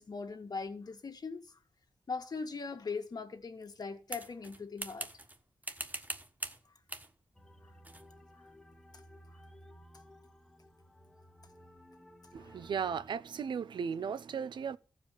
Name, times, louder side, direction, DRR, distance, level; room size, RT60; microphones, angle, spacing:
voice 1, 0.0-1.6 2.1-5.1 9.3-9.4 12.4-12.5, left 4 dB, 55° left, 1.8 m, -40 dB
sound 1, 4.1-5.4 5.6-6.6 6.9-7.1 7.8-8.1, right 2 dB, 20° right, 1.5 m, -42 dB
sound 2, 7.3-13.1, equal, 5° left, 1.4 m, -57 dB
voice 2, 12.3-14.8, right 7 dB, 80° right, 0.7 m, -36 dB
14.5 x 5.0 x 7.5 m
cardioid pair, 60°, 8 cm